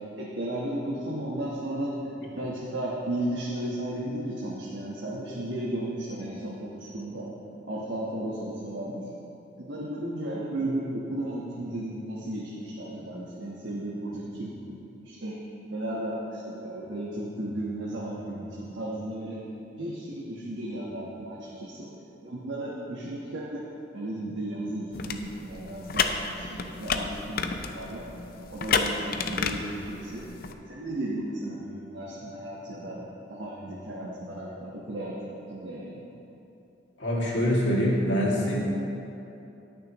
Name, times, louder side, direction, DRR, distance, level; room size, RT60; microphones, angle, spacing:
voice 1, 0.1-2.0 2.3-7.3 7.6-9.0 9.6-14.8 15.0-15.4 15.7-19.4 19.8-21.9 22.2-23.6 23.9-28.0 28.5-30.2 30.7-33.0 33.3-36.0, right 1 dB, 85° right, -6 dB, 1.3 m, -34 dB
sound 1, 24.9-30.5, left 5 dB, 55° left, 0.5 m, -31 dB
voice 2, 37.0-38.5, equal, 80° left, -5 dB, 2.2 m, -24 dB
19.5 x 6.7 x 3.0 m, 2.9 s
head